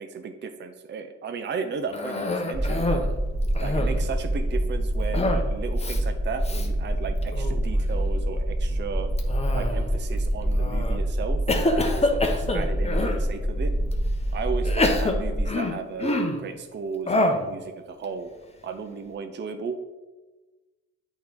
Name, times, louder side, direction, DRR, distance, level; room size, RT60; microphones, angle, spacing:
voice 1, 0.0-3.0 3.6-9.1 9.5-13.7 14.3-18.3 18.6-19.8, right 5 dB, 35° right, 7 dB, 0.6 m, -35 dB
Cough, 1.9-3.1 3.4-4.1 5.1-5.5 5.8-6.0 6.4-6.7 7.2-7.7 9.2-10.0 10.6-11.0 11.5-13.2 13.9-14.0 14.6-16.5 17.1-17.5, left 2 dB, 20° left, 0.9 m, -26 dB
sound 1, 2.5-15.5, right 1 dB, ahead, 1.5 m, -26 dB
8.2 x 3.0 x 3.9 m, 1.2 s
hypercardioid pair, 50°, 32 cm